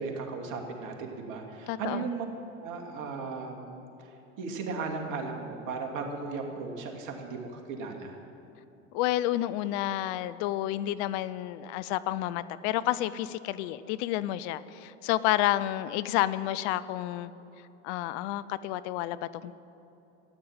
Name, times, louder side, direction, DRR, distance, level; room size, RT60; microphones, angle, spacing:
voice 1, 0.0-2.3 2.6-8.2, right 4 dB, 55° right, 2 dB, 2.6 m, -36 dB
voice 2, 1.7-2.1 8.9-17.3 17.8-19.5, left 14 dB, 60° left, 15 dB, 0.7 m, -30 dB
14.0 x 9.5 x 8.9 m, 3.0 s
hypercardioid pair, 80°, 37 cm